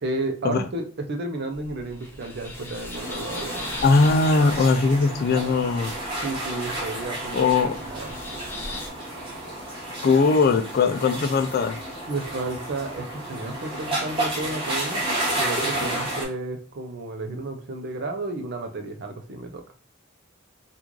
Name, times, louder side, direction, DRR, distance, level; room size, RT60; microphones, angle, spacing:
voice 1, 0.0-3.7 6.2-7.5 7.8-8.1 12.1-19.6, right 2 dB, 50° right, 5 dB, 0.6 m, -32 dB
sound 1, 1.5-8.9, left 1 dB, 10° left, 0.7 m, -39 dB
sound 2, 2.9-16.2, right 1 dB, 25° right, 1.1 m, -31 dB
voice 2, 3.8-5.9 7.3-7.8 10.0-11.8, left 4 dB, 45° left, 8 dB, 0.4 m, -20 dB
3.0 x 2.4 x 3.7 m, 0.42 s
head